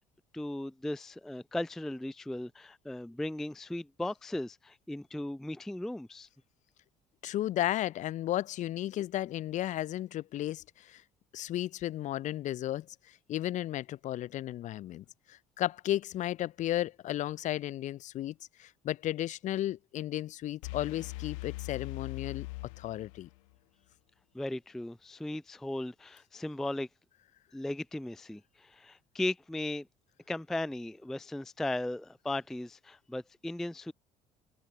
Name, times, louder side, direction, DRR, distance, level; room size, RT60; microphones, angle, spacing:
voice 1, 0.3-6.3 24.3-26.9 27.5-29.9 30.3-33.9, left 1 dB, ahead, 0.3 m, -37 dB
voice 2, 7.2-11.0 11.3-12.9 13.3-22.5 22.8-23.3, left 13 dB, 45° left, 0.6 m, -34 dB
sound 1, 20.6-23.5, left 25 dB, 65° left, 1.5 m, -41 dB
figure-of-eight pair, 55°, 18 cm